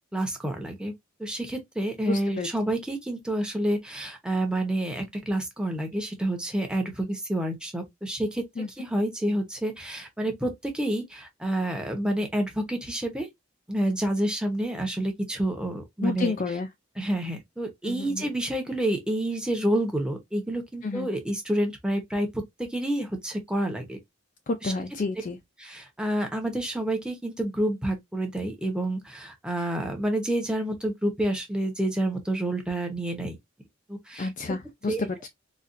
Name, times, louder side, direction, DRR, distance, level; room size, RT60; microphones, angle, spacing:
voice 1, 0.1-0.9 1.2-8.4 8.8-13.3 13.7-16.3 17.0-24.0 24.6-24.7 25.6-33.4 33.9-34.3 34.9-35.3, right 1 dB, 5° right, 0.8 m, -29 dB
voice 2, 2.1-2.5 8.6-8.7 16.0-16.7 17.8-18.3 20.8-21.1 24.5-25.4 34.2-35.3, left 3 dB, 45° left, 0.4 m, -30 dB
4.0 x 2.4 x 2.5 m
head